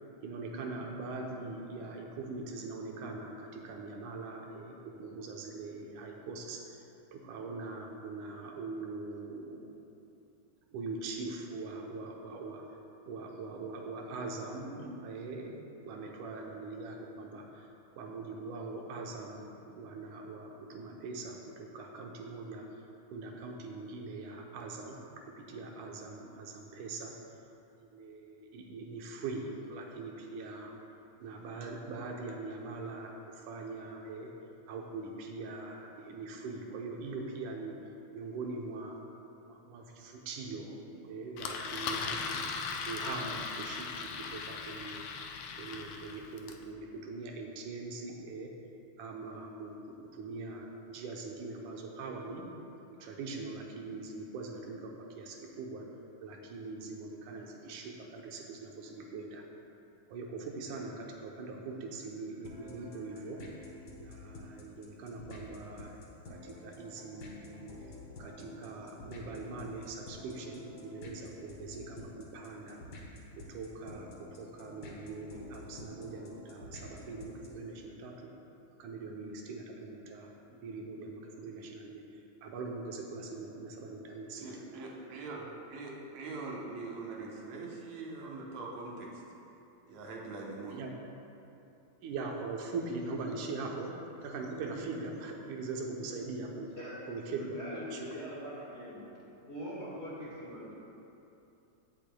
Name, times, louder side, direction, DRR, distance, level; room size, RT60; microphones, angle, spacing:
voice 1, 0.2-6.6 7.1-9.7 10.7-12.8 13.1-15.6 15.8-17.7 18.0-22.7 23.1-25.0 25.4-27.1 27.9-30.8 31.2-34.3 34.7-37.7 38.2-39.0 39.4-42.4 42.9-45.0 45.6-48.5 49.0-49.7 50.1-52.5 52.9-55.8 56.2-59.4 60.1-63.4 64.0-66.0 66.3-67.7 68.2-72.8 73.5-74.1 74.4-78.3 78.8-82.0 82.4-84.6 85.3-85.5 90.7-90.9 92.0-96.7 97.1-97.6 97.9-98.1, right 3 dB, 85° right, 0 dB, 2.3 m, -42 dB
Engine, 41.4-46.6, left 5 dB, 85° left, 1.3 m, -38 dB
sound 1, 62.4-77.7, left 2 dB, 60° left, 1.1 m, -50 dB
voice 2, 84.3-85.4 85.7-89.2 89.9-90.8, right 3 dB, 70° right, -2 dB, 2.2 m, -42 dB
voice 3, 97.3-99.1 99.5-100.7, equal, 25° left, -8 dB, 1.6 m, -42 dB
15.5 x 6.8 x 2.3 m, 2.8 s
omnidirectional pair, 3.4 m